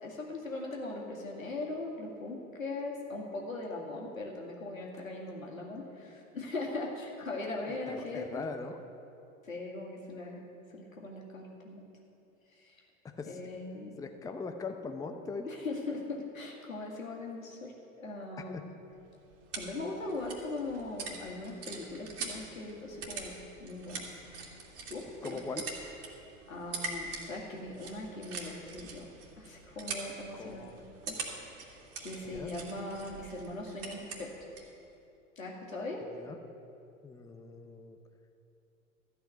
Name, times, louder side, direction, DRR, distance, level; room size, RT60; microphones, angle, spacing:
voice 1, 0.0-8.4 9.4-10.4 10.7-11.9 12.6-12.8 13.3-13.9 15.5-17.7 18.0-18.6 19.5-23.3 23.6-24.2 24.9-25.4 26.5-29.1 29.4-31.2 32.0-34.3 35.4-36.0, left 2 dB, 85° left, -1 dB, 2.1 m, -40 dB
voice 2, 7.7-8.8 13.2-13.4 14.0-15.6 18.4-18.6 25.2-25.7 30.4-30.8 32.3-32.5 36.2-36.4 37.0-38.0, left 4 dB, 10° left, 6 dB, 0.6 m, -41 dB
sound 1, 18.9-34.8, right 4 dB, 35° right, 2.3 m, -44 dB
13.5 x 5.6 x 8.9 m, 2.7 s
figure-of-eight pair, 85°, 39 cm